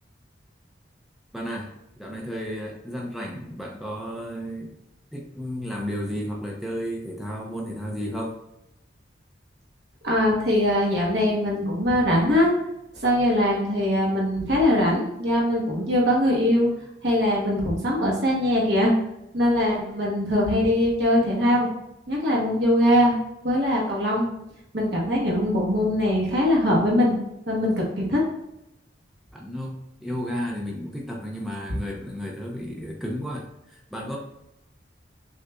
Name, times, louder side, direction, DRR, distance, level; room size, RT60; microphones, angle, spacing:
voice 1, 1.3-1.7 2.0-4.7 5.1-8.4 29.3-34.2, equal, ahead, -2 dB, 0.5 m, -33 dB
voice 2, 10.0-12.5 12.9-16.7 17.0-18.9 19.3-21.7 22.1-23.2 23.4-24.3 24.7-27.2 27.5-28.2, left 1 dB, 65° right, -3 dB, 1.0 m, -22 dB
6.3 x 2.4 x 2.2 m, 0.85 s
head